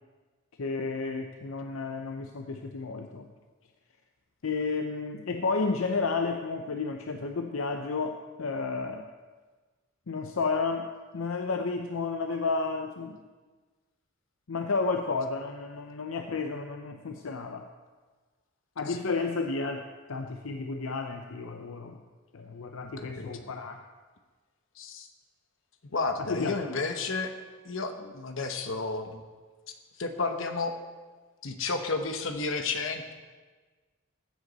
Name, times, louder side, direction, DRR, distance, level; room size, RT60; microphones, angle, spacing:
voice 1, 0.6-3.3 4.4-9.1 10.1-10.9 11.1-13.2 14.5-17.7 18.8-22.0 22.3-23.8 26.3-26.6, left 4 dB, 85° left, 5 dB, 0.6 m, -32 dB
voice 2, 22.8-23.5 24.8-25.1 25.9-27.3 27.6-29.2 30.0-30.8 31.4-33.1, left 3 dB, 70° left, 6 dB, 1.0 m, -32 dB
15.5 x 8.1 x 4.1 m, 1.4 s
head